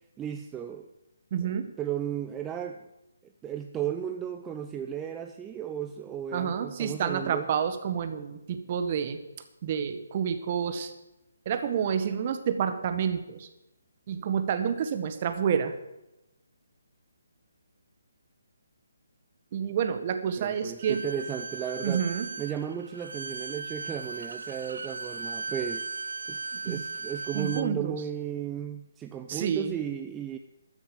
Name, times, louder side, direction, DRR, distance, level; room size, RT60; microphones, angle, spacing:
voice 1, 0.2-0.9 1.4-1.5 1.8-2.8 3.4-7.5 20.4-22.0 22.4-25.9 26.3-30.4, right 9 dB, 15° right, 6 dB, 0.5 m, -35 dB
voice 2, 1.3-1.7 6.3-9.2 9.6-10.9 11.4-13.5 14.1-15.7 19.5-21.0 21.8-22.3 26.5-26.8 27.3-27.9 29.3-29.7, right 7 dB, 40° right, 8 dB, 1.4 m, -29 dB
Bowed string instrument, 20.8-27.7, right 4 dB, 70° right, 0.5 m, -37 dB
13.0 x 7.1 x 8.0 m, 0.93 s
figure-of-eight pair, 145°, 0 cm